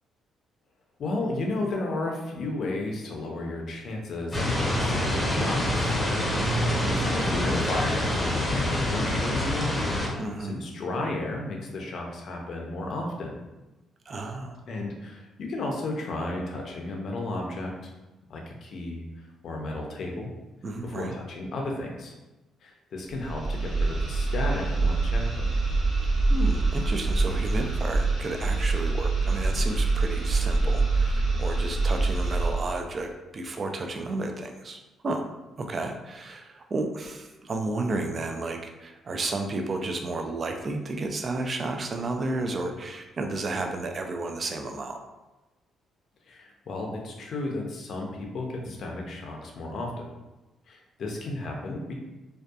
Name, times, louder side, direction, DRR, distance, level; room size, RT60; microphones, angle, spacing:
voice 1, 1.0-9.8 10.1-13.4 14.7-17.9 18.3-19.0 19.4-20.3 20.8-22.1 22.6-25.6 46.3-50.1 50.7-52.0, left 2 dB, 60° left, 0 dB, 0.5 m, -33 dB
sound 1, 4.3-10.1, left 1 dB, 20° left, 0.7 m, -26 dB
voice 2, 10.2-10.6 14.1-14.6 20.6-21.1 26.0-35.2 35.6-45.0, right 2 dB, 40° right, 4 dB, 0.3 m, -32 dB
sound 2, 23.1-32.8, right 3 dB, 55° right, 1.2 m, -25 dB
2.6 x 2.2 x 2.3 m, 1.1 s
cardioid pair, 90°, 0 cm